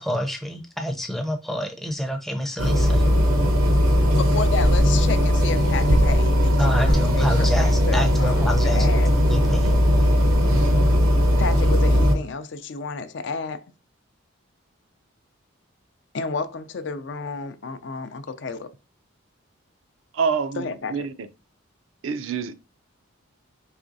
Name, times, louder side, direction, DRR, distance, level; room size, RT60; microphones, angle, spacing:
voice 1, 0.0-3.0 6.6-9.7, equal, ahead, 0.5 m, -27 dB
sound 1, 2.6-12.2, equal, 90° right, 1.0 m, -18 dB
voice 2, 4.2-9.1 11.4-13.6 16.1-18.7 20.6-20.9, left 4 dB, 55° left, 0.4 m, -31 dB
voice 3, 20.1-21.3 22.0-22.5, right 5 dB, 70° right, 0.4 m, -26 dB
4.8 x 3.1 x 2.6 m
head